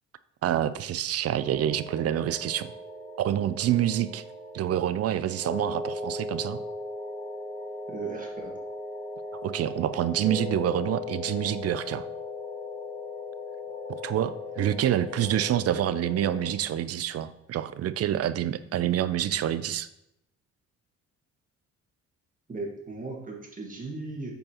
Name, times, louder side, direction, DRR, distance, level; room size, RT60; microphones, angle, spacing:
voice 1, 0.4-2.7 3.2-4.2 4.5-6.6 9.4-12.0 13.9-19.9, right 11 dB, 55° right, 14 dB, 0.4 m, -27 dB
sound 1, 1.4-16.5, left 2 dB, 25° left, 1.0 m, -38 dB
voice 2, 7.9-8.5 22.5-24.3, right 3 dB, 25° right, -1 dB, 1.7 m, -37 dB
7.6 x 4.6 x 2.9 m, 0.82 s
cardioid pair, 90°, 30 cm